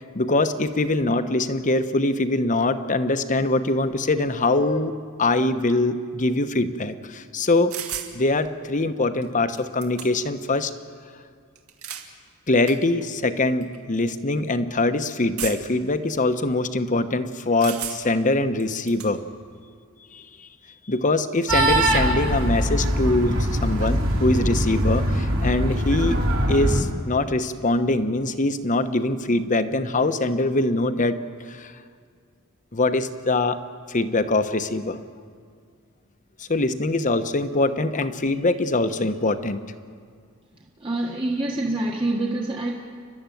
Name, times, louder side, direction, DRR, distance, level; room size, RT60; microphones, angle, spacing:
voice 1, 0.1-4.9 5.2-7.8 8.1-10.7 12.5-19.2 20.1-20.5 20.9-26.2 26.5-31.2 31.5-31.7 32.7-33.6 33.9-35.0 36.5-39.6, left 2 dB, 35° left, 10 dB, 1.0 m, -23 dB
sound 1, 7.7-8.1 9.2-9.3 9.5-10.4 11.6-12.1 12.7-12.8 13.6-13.8 15.4-15.8 17.6-18.2 18.6-19.1, right 9 dB, 90° right, 2.2 m, -34 dB
sound 2, 21.5-26.8, right 1 dB, 65° right, 3.1 m, -22 dB
voice 2, 40.6-42.7, right 2 dB, 25° right, -1 dB, 1.4 m, -26 dB
29.5 x 12.5 x 9.2 m, 2.1 s
head